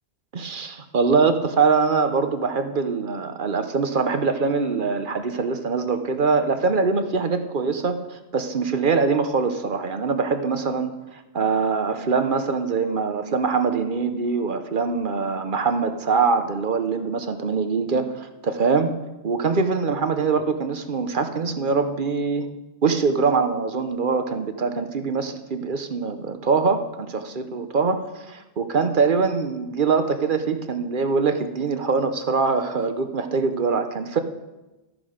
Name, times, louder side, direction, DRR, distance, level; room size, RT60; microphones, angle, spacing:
voice 1, 0.3-18.9 19.2-22.5 22.8-34.2, right 4 dB, 50° right, 8 dB, 1.0 m, -23 dB
13.0 x 10.0 x 5.0 m, 1.1 s
omnidirectional pair, 1.1 m